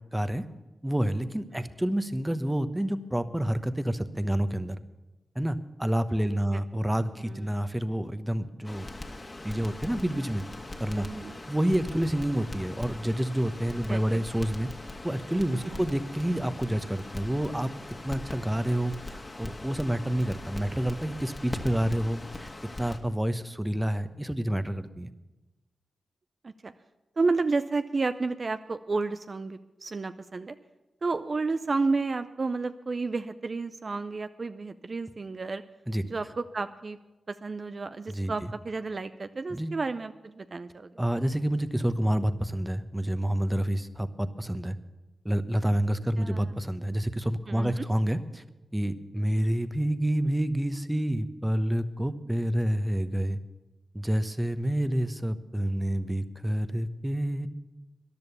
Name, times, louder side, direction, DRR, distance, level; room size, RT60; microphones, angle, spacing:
voice 1, 0.1-0.4 0.8-4.8 5.3-8.9 9.4-10.4 10.8-11.1 11.5-14.7 15.0-17.7 18.0-22.5 22.8-25.1 35.9-36.0 38.1-38.3 39.5-39.7 41.0-44.8 45.2-48.4 48.7-53.4 53.9-57.5, right 1 dB, 10° right, 11 dB, 1.0 m, -28 dB
voice 2, 7.2-7.6 11.0-11.4 13.9-14.3 15.5-15.8 26.4-26.7 27.2-30.6 31.0-35.6 36.0-37.0 37.3-40.9 46.2-46.5 47.5-47.9, right 3 dB, 50° right, 11 dB, 0.5 m, -31 dB
Crackle, 8.6-23.0, left 2 dB, 35° left, 1.7 m, -41 dB
14.0 x 10.5 x 6.9 m, 1.1 s
cardioid pair, 45°, 0 cm